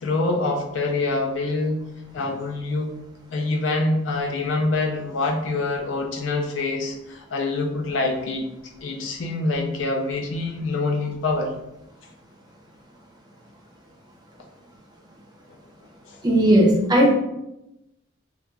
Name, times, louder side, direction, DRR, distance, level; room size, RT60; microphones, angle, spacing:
voice 1, 0.0-1.8 2.1-2.9 3.3-8.4 8.8-11.5 16.1-16.2, left 2 dB, 70° left, 2 dB, 0.4 m, -25 dB
voice 2, 16.2-17.1, right 1 dB, 20° right, -1 dB, 0.5 m, -16 dB
2.3 x 2.3 x 3.0 m, 0.89 s
head